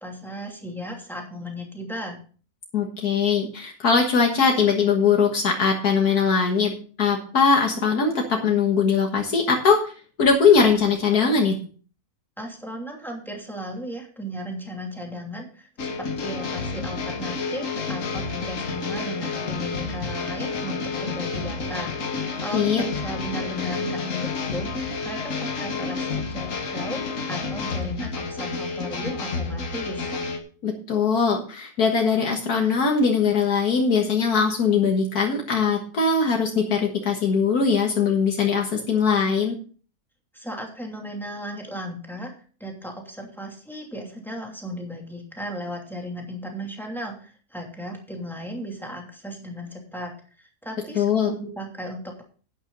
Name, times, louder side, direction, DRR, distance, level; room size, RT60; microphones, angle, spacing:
voice 1, 0.0-2.2 12.4-27.0 27.3-30.1 40.3-42.3 42.6-50.1 50.4-52.2, equal, ahead, 1 dB, 2.7 m, -35 dB
voice 2, 2.7-6.7 7.0-9.9 10.2-11.6 22.5-22.8 30.6-39.5 51.0-51.3, left 5 dB, 75° left, 1 dB, 2.0 m, -21 dB
sound 1, 15.8-30.4, left 4 dB, 55° left, 1.8 m, -30 dB
11.5 x 9.9 x 3.9 m, 0.40 s
omnidirectional pair, 1.6 m